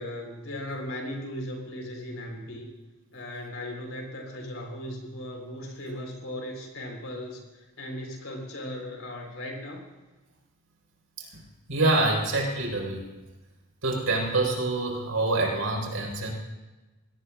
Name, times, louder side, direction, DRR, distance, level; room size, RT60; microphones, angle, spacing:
voice 1, 0.0-2.7 3.1-9.8, left 1 dB, 75° left, 1 dB, 4.0 m, -37 dB
voice 2, 11.7-13.0 13.8-16.3, right 2 dB, 80° right, -1 dB, 4.7 m, -26 dB
22.0 x 17.5 x 2.5 m, 1.1 s
head